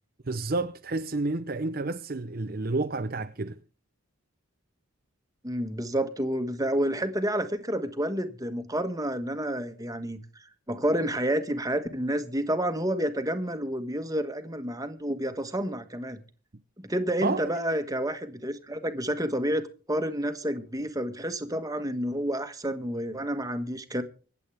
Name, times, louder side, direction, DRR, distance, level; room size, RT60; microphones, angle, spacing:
voice 1, 0.3-3.6 17.2-17.5, right 3 dB, 40° right, 0.6 m, -30 dB
voice 2, 5.4-16.2 16.8-19.6 19.9-24.0, right 1 dB, 15° right, 1.3 m, -29 dB
25.0 x 8.4 x 3.4 m
head